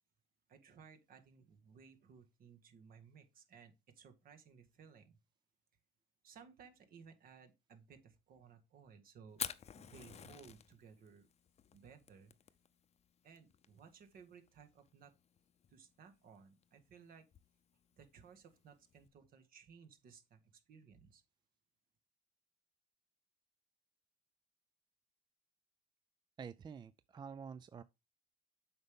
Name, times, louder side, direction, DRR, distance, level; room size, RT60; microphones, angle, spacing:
voice 1, 0.5-5.2 6.2-9.5 9.7-11.3 11.7-12.3 13.2-15.1 15.7-17.3 18.0-21.2, right 6 dB, 60° right, 1.8 m, -60 dB
Fire, 9.3-19.1, left 8 dB, 40° left, 0.6 m, -51 dB
voice 2, 26.4-27.8, right 6 dB, 25° right, 0.4 m, -48 dB
7.9 x 5.4 x 3.6 m
cardioid pair, 110°, 17 cm